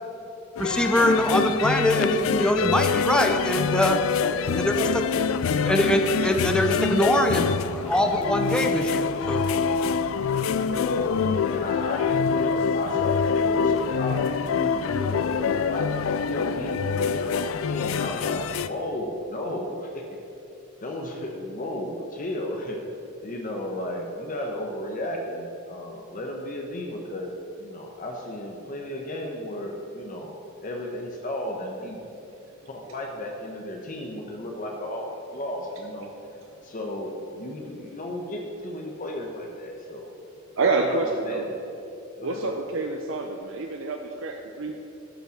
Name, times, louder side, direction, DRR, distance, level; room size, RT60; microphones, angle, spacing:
sound 1, 0.6-18.7, left 6 dB, 75° left, 0.4 m, -25 dB
voice 1, 0.6-4.0 4.6-5.0 5.6-9.4, equal, 5° left, 5 dB, 0.6 m, -23 dB
voice 2, 4.3-5.2 10.8-14.2 14.5-15.9 16.2-20.0 20.8-22.8 23.2-27.3 27.6-30.3 30.6-32.0 32.7-36.1 36.6-40.1 40.6-41.6 42.2-42.5, left 1 dB, 40° left, 1 dB, 0.9 m, -34 dB
voice 3, 40.6-41.5 42.2-44.7, right 3 dB, 70° right, 3 dB, 0.6 m, -27 dB
12.0 x 5.6 x 6.4 m, 2.8 s
head